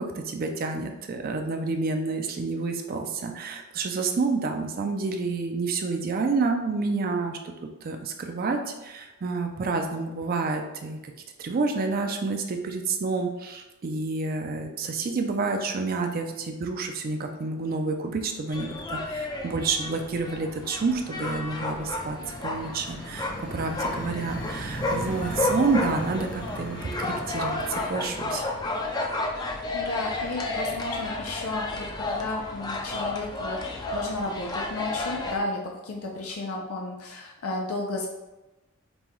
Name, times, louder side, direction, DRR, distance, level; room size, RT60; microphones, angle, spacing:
voice 1, 0.0-7.4 7.8-11.1 11.4-28.4, right 4 dB, 45° right, 4 dB, 0.4 m, -29 dB
sound 1, 15.7-16.3 16.6-17.3 17.7-28.8, equal, 40° left, 0.8 m, -40 dB
sound 2, 18.5-35.4, left 2 dB, 20° left, 0.4 m, -32 dB
voice 2, 29.4-38.1, left 2 dB, 75° left, 0 dB, 0.5 m, -33 dB
5.3 x 2.2 x 3.0 m, 1.0 s
head